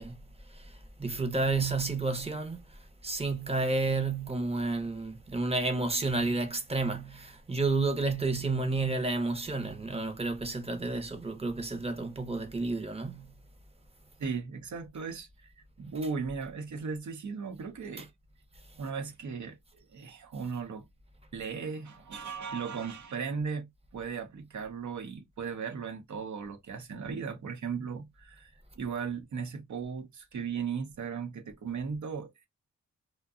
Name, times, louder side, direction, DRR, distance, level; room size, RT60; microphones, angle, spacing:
voice 1, 0.0-13.3, right 3 dB, 20° right, 0.7 m, -31 dB
voice 2, 14.2-15.5 15.8-18.1 18.8-20.9 21.3-32.5, right 5 dB, 70° right, 0.8 m, -37 dB
2.6 x 2.2 x 2.3 m
cardioid pair, 90°, 31 cm